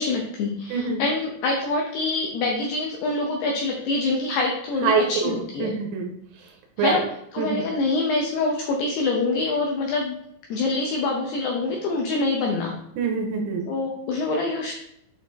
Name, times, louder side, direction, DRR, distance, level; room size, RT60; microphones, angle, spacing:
voice 1, 0.0-5.8 6.8-7.0 7.3-10.2 10.5-12.7 13.7-14.7, left 3 dB, 85° left, 0 dB, 2.3 m, -25 dB
voice 2, 0.7-1.0 4.8-5.3 5.6-6.1 6.8-7.0 7.4-7.6 13.0-13.7, right 4 dB, 80° right, 2 dB, 3.2 m, -24 dB
7.9 x 4.3 x 4.1 m, 0.77 s
omnidirectional pair, 5.7 m